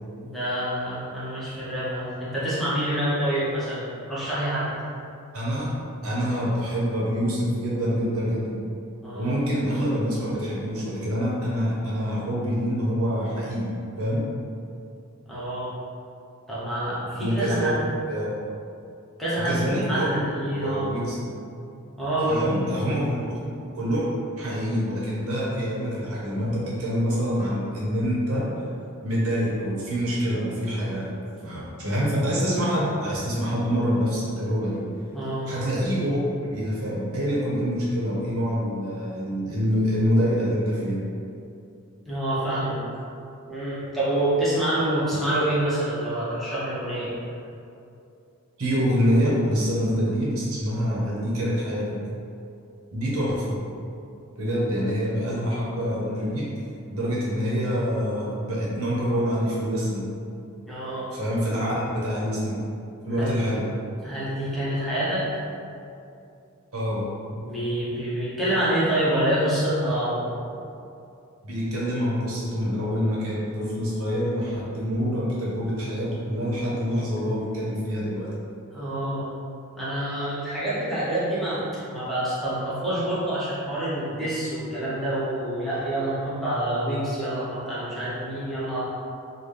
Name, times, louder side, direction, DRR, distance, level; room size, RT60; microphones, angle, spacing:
voice 1, 0.2-4.7 9.0-9.4 15.3-15.7 16.5-17.8 19.2-20.9 22.0-22.6 35.1-35.5 42.1-42.8 43.5-47.1 60.7-61.1 63.1-63.4 64.0-65.3 67.3-70.4 78.7-79.3 79.8-88.8, right 1 dB, ahead, -11 dB, 0.9 m, -27 dB
voice 2, 5.3-5.7 6.0-8.6 9.1-13.7 14.0-14.2 17.2-17.7 18.1-18.3 19.4-20.2 20.5-21.2 22.3-24.0 24.4-28.5 29.0-31.1 31.4-34.8 35.5-36.2 36.5-41.0 48.6-52.0 52.9-53.6 54.4-56.5 56.9-60.0 61.1-62.6 63.0-63.6 66.7-67.1 71.4-78.3, equal, 80° right, -6 dB, 1.0 m, -26 dB
4.0 x 2.2 x 3.3 m, 2.6 s
head